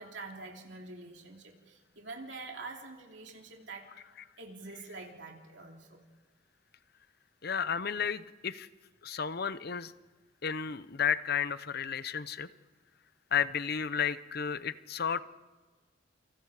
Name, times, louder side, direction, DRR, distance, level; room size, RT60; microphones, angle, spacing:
voice 1, 0.0-3.9 4.4-6.0, right 3 dB, 65° right, 1 dB, 3.0 m, -46 dB
voice 2, 7.4-8.7 9.0-9.9 10.4-12.5 13.3-15.2, left 7 dB, 55° left, 15 dB, 0.8 m, -32 dB
29.0 x 26.5 x 5.0 m, 1.4 s
head